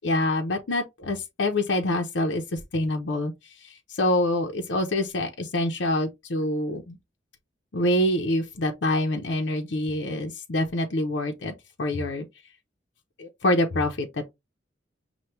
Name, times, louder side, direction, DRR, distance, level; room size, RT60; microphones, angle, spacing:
voice 1, 0.0-7.0 7.7-12.3 13.2-14.3, left 1 dB, 70° left, 0.7 m, -26 dB
5.7 x 2.3 x 3.2 m
head